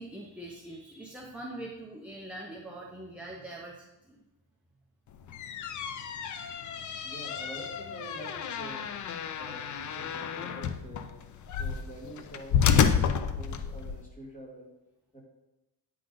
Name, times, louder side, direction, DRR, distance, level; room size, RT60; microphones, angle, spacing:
voice 1, 0.0-4.2 9.0-9.5, right 1 dB, 5° right, -2 dB, 0.6 m, -44 dB
sound 1, 5.1-14.0, left 7 dB, 45° left, 0.5 m, -30 dB
voice 2, 7.0-8.9 9.2-11.1 11.5-14.7 15.1-15.2, right 1 dB, 20° left, -3 dB, 2.1 m, -47 dB
9.0 x 3.9 x 5.2 m, 1.0 s
cardioid pair, 140°, 43 cm